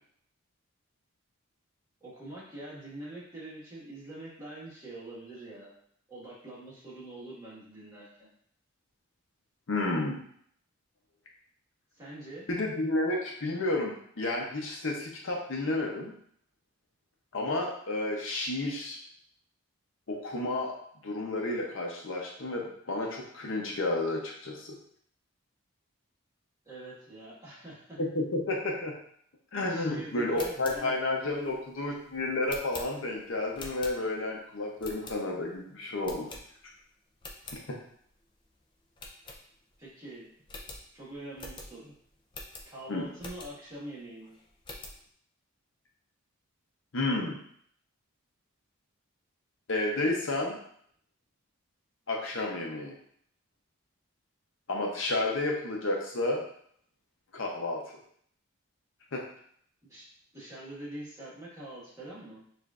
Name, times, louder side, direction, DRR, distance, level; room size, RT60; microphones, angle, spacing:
voice 1, 2.0-5.7 6.1-8.3 11.9-12.4 26.6-28.0 29.7-30.9 31.2-31.4 39.8-40.3 40.9-41.9 42.6-44.3 59.9-60.0 60.3-62.4, right 1 dB, 15° right, -8 dB, 1.4 m, -44 dB
voice 2, 9.7-10.2 12.5-16.1 17.3-19.0 20.1-20.7 21.0-24.8 28.0-28.9 29.5-36.3 37.7-37.8 42.9-43.0 46.9-47.4 49.7-50.6 52.1-52.9 54.7-56.4 57.3-57.8 59.1-59.2, left 2 dB, 60° left, -1 dB, 0.7 m, -31 dB
sound 1, 30.2-34.3 34.8-35.5 36.0-36.8 37.1-37.6 38.1-38.2 38.4-38.5 39.0-39.9 40.1-40.2 40.5-43.8 44.2-45.0, left 2 dB, 20° left, 0.4 m, -45 dB
6.6 x 2.5 x 2.4 m, 0.64 s
head